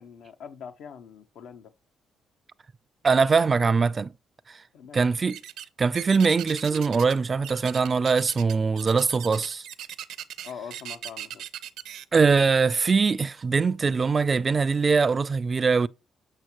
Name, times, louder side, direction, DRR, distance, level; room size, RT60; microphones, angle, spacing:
voice 1, 0.0-1.7 4.7-5.0 10.4-11.4, left 7 dB, 80° left, 0.8 m, -43 dB
voice 2, 3.0-4.1 4.9-5.4 5.8-9.7 12.1-15.9, right 5 dB, 35° right, 0.4 m, -22 dB
sound 1, 5.3-5.7 5.9-7.2 7.4-12.0, right 11 dB, 85° right, 0.6 m, -39 dB
7.6 x 5.9 x 2.9 m
cardioid pair, 90°, 0 cm